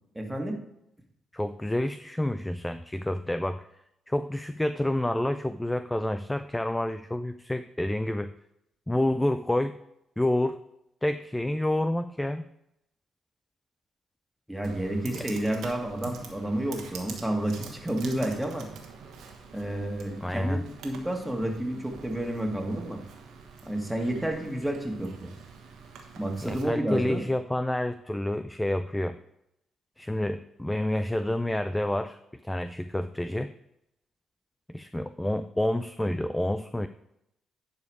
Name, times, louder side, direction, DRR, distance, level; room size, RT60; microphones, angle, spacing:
voice 1, 0.2-0.6 14.5-18.7 19.5-23.0 23.7-25.3 26.2-27.2, right 1 dB, 5° right, 2 dB, 2.1 m, -30 dB
voice 2, 1.3-3.7 4.1-8.3 8.9-9.8 10.2-10.6 11.0-12.4 15.1-15.3 20.2-20.6 26.4-29.2 30.0-33.5 34.7-36.9, left 1 dB, 10° left, 11 dB, 0.4 m, -28 dB
Computer keyboard, 14.6-26.6, right 5 dB, 70° right, 1.4 m, -45 dB
11.0 x 5.0 x 4.7 m, 0.81 s
hypercardioid pair, 45°, 0 cm